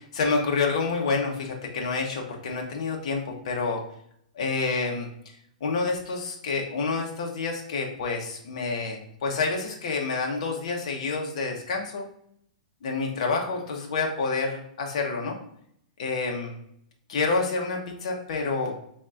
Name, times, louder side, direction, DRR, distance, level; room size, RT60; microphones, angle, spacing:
voice 1, 0.1-3.8 4.4-5.1 5.6-12.0 12.8-15.4 16.0-16.5 17.1-18.7, left 4 dB, 50° left, 1 dB, 1.1 m, -28 dB
4.3 x 4.2 x 2.5 m, 0.69 s
hypercardioid pair, 170°, 4 cm